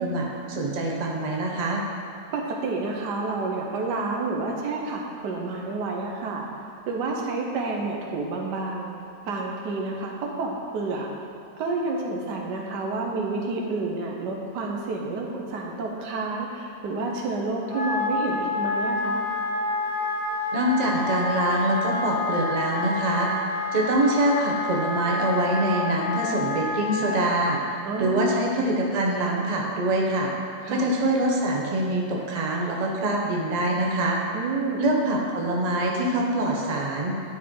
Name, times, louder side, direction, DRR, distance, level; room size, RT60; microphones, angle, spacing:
voice 1, 0.0-1.8 20.5-23.3 23.7-30.3 30.7-34.2 34.8-37.2, right 1 dB, 35° right, -1 dB, 0.7 m, -24 dB
voice 2, 2.3-6.4 6.9-8.9 9.3-11.1 11.6-19.2 27.8-28.4 30.6-30.9 34.3-34.8, right 3 dB, 85° right, -1 dB, 1.5 m, -29 dB
Wind instrument woodwind instrument, 17.6-27.5, left 3 dB, 20° left, 1.4 m, -28 dB
10.5 x 4.4 x 3.7 m, 2.8 s
omnidirectional pair, 1.8 m